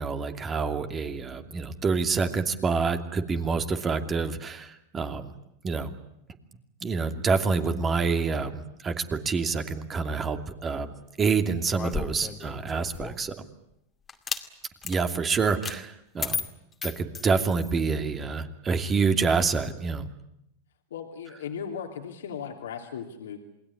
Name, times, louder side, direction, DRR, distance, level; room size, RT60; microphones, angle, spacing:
voice 1, 0.0-5.3 5.6-5.9 6.8-10.9 11.2-13.3 14.8-16.4 16.8-20.0, right 4 dB, 25° right, 8 dB, 2.7 m, -27 dB
sound 1, 11.7-13.3 14.1-14.5 14.8-15.0 15.6-15.8 16.2-17.7, left 6 dB, 20° left, 2.4 m, -34 dB
voice 2, 20.9-23.4, left 7 dB, 80° left, 3 dB, 3.0 m, -37 dB
28.0 x 20.5 x 9.9 m, 0.81 s
hypercardioid pair, 110°, 0 cm